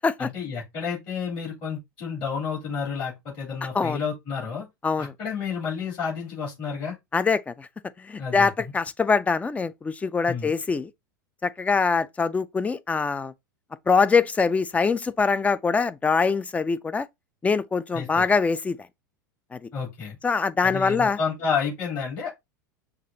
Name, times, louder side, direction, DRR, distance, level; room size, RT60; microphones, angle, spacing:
voice 1, 0.2-4.7 5.0-6.9 8.2-8.5 10.3-10.5 17.9-18.2 19.7-20.2 20.6-22.3, left 6 dB, 45° left, 3.1 m, -30 dB
voice 2, 7.1-7.7 8.0-10.9 11.4-13.3 13.9-17.1 17.4-18.8 19.5-19.6 20.2-21.2, left 5 dB, 15° left, 0.4 m, -23 dB
6.0 x 2.5 x 2.7 m
figure-of-eight pair, 85°, 11 cm